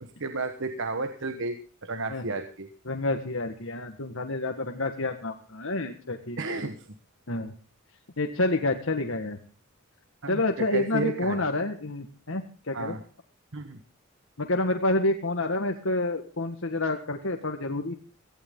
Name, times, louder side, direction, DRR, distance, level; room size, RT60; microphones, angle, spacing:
voice 1, 0.0-2.7 6.4-6.9 10.2-11.5 12.7-13.0 13.5-13.8, right 3 dB, 60° right, 8 dB, 1.3 m, -32 dB
voice 2, 2.9-6.7 7.3-7.5 8.2-9.4 10.3-13.0 14.4-17.9, left 2 dB, 60° left, 4 dB, 1.7 m, -28 dB
18.0 x 15.5 x 3.8 m, 0.34 s
head